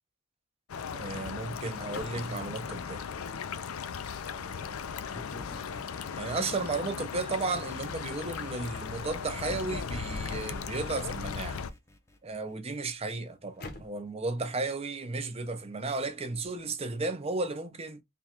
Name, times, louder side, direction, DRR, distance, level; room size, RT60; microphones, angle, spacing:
sound 1, 0.7-11.7, left 6 dB, 70° left, 0.4 m, -37 dB
voice 1, 0.9-3.1 4.3-5.0 6.2-11.6 12.2-18.0, right 3 dB, 30° right, 0.7 m, -34 dB
sound 2, 2.7-3.9 5.2-8.2 9.5-12.7, left 1 dB, 15° left, 0.5 m, -48 dB
sound 3, 11.4-16.9, left 2 dB, 50° left, 0.8 m, -55 dB
3.4 x 2.3 x 4.3 m
head